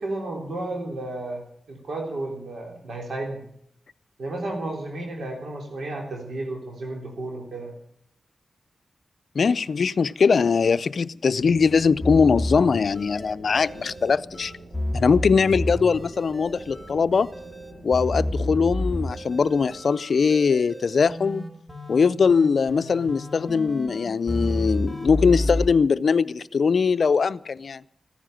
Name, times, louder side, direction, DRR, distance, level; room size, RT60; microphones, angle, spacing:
voice 1, 0.0-1.4 1.7-3.4 4.2-7.7, right 2 dB, 80° right, 3.6 m, -32 dB
voice 2, 9.3-14.5 14.9-17.3 17.8-21.5 21.9-27.8, left 5 dB, 70° left, 0.5 m, -21 dB
sound 1, 11.4-19.8, right 1 dB, 40° right, 6.8 m, -45 dB
sound 2, 12.0-25.7, left 1 dB, ahead, 2.6 m, -30 dB
15.0 x 9.9 x 9.1 m
cardioid pair, 60°, 0 cm